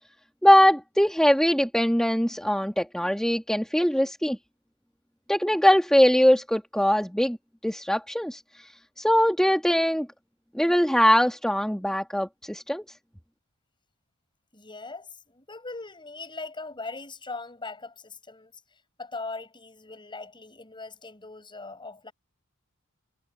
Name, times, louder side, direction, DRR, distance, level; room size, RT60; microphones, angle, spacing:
voice 1, 0.4-4.4 5.3-7.4 7.6-8.7 9.0-10.1 10.5-12.8, equal, 5° left, 1.7 m, -21 dB
voice 2, 14.5-18.5 19.0-22.1, left 3 dB, 20° left, 7.4 m, -40 dB
head